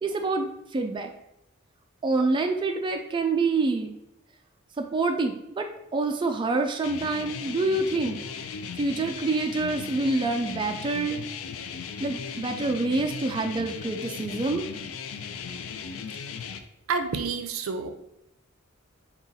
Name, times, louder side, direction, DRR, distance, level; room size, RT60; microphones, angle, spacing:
voice 1, 0.0-1.1 2.0-4.0 4.8-8.2 8.8-11.2 12.0-14.7, right 3 dB, 25° right, 4 dB, 0.3 m, -27 dB
sound 1, 6.8-16.6, left 6 dB, 75° left, 0.4 m, -37 dB
voice 2, 16.9-17.9, right 4 dB, 85° right, 7 dB, 0.5 m, -29 dB
3.9 x 2.4 x 3.8 m, 0.87 s
head